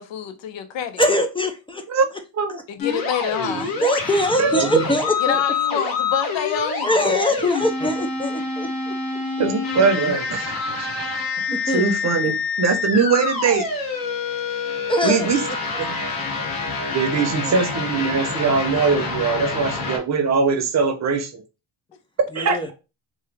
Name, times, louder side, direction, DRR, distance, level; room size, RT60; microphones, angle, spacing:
voice 1, 0.0-1.0 2.7-3.8 5.2-7.4, left 8 dB, 65° left, 0.8 m, -27 dB
voice 2, 1.0-1.8 3.8-5.4 6.8-8.9 11.5-11.9 12.2-12.3 14.9-15.3 17.3-17.6 22.3-22.7, left 1 dB, 10° left, 0.4 m, -22 dB
sound 1, 2.8-20.0, left 4 dB, 45° left, 1.2 m, -27 dB
voice 3, 3.4-3.9 4.4-4.8 9.4-10.5 10.8-10.9 11.7-13.7 15.0-15.4 15.8-15.9 16.9-21.4 22.3-22.5, right 5 dB, 35° right, 0.8 m, -21 dB
3.0 x 2.2 x 3.3 m
supercardioid pair, 75°, 49 cm